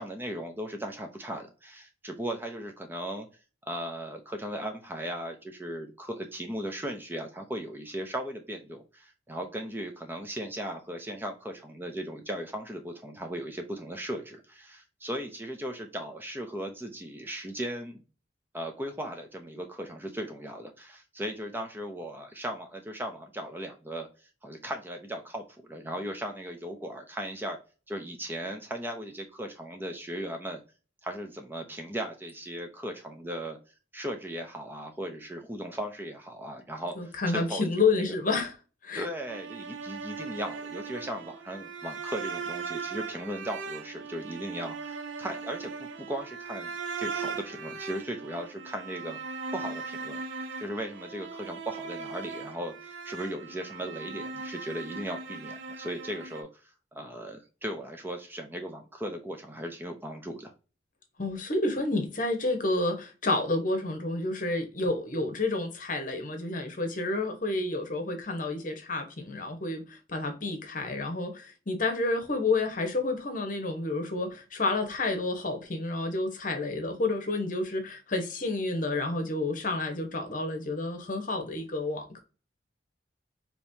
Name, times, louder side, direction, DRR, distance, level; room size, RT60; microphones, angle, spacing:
voice 1, 0.0-3.3 3.7-18.0 18.5-25.4 25.7-27.6 27.9-30.6 31.0-33.6 33.9-37.6 38.0-38.1 38.9-46.7 47.0-49.2 49.5-56.5 56.9-60.5, right 1 dB, 10° right, 0.6 m, -37 dB
voice 2, 37.0-38.5 38.8-39.1 61.2-82.2, left 2 dB, 45° left, 1.1 m, -30 dB
sound 1, 39.3-56.4, right 4 dB, 85° right, 0.7 m, -39 dB
5.2 x 3.0 x 2.7 m
head